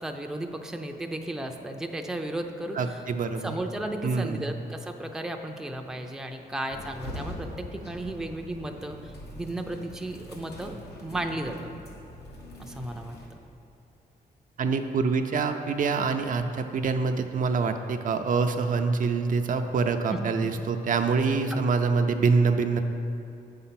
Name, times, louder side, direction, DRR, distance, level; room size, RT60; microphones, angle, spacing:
voice 1, 0.0-3.0 3.4-11.7 12.6-13.2 20.1-20.2 21.6-21.8, right 1 dB, 5° right, 3 dB, 0.5 m, -34 dB
voice 2, 2.7-3.5 4.0-4.5 14.6-22.8, right 4 dB, 55° right, 6 dB, 0.5 m, -25 dB
sound 1, 6.7-13.3, left 1 dB, 85° left, 1.4 m, -42 dB
8.0 x 5.5 x 5.8 m, 2.6 s
wide cardioid pair, 130°, 17 cm